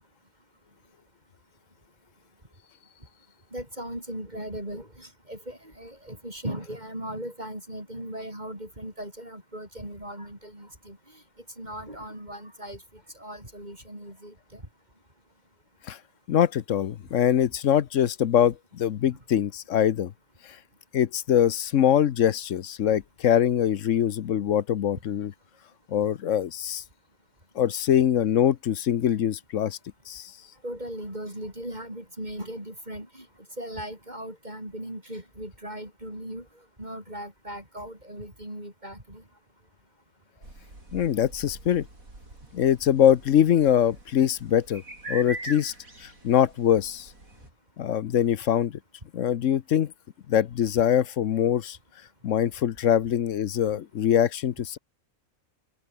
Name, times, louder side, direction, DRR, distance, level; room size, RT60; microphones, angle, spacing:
voice 1, 3.5-11.2 11.6-12.8 13.1-14.6 19.1-19.2 30.6-33.3 33.6-36.5 36.8-39.2, right 1 dB, 30° right, 7.8 m, -38 dB
voice 2, 16.3-20.1 20.9-25.3 25.9-26.8 27.6-29.8 30.1-30.3 40.9-41.8 42.5-44.8 45.1-45.7 46.0-47.1 47.8-48.7 49.1-49.9 50.3-51.8 52.2-54.8, left 10 dB, 65° left, 1.1 m, -23 dB
sound 1, 40.4-47.5, right 2 dB, 90° right, 7.1 m, -43 dB
omnidirectional pair, 1.4 m